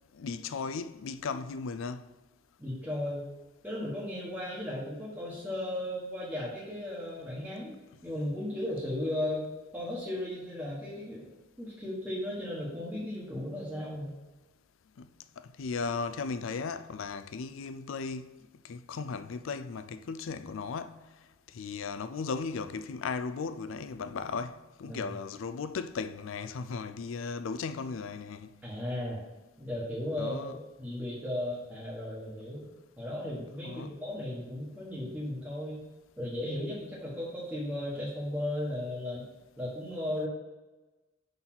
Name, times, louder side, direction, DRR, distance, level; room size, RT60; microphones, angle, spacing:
voice 1, 0.1-2.1 15.0-15.1 15.4-18.4 18.6-21.0 21.5-28.5 30.2-30.6 33.6-33.9, left 5 dB, 65° left, 0.4 m, -36 dB
voice 2, 2.6-3.2 3.6-9.5 9.7-11.3 11.6-14.1 24.8-25.1 28.6-29.2 29.6-32.6 33.0-35.8 36.2-39.2 39.6-40.3, left 1 dB, 10° right, 1.2 m, -35 dB
5.7 x 4.0 x 5.9 m
head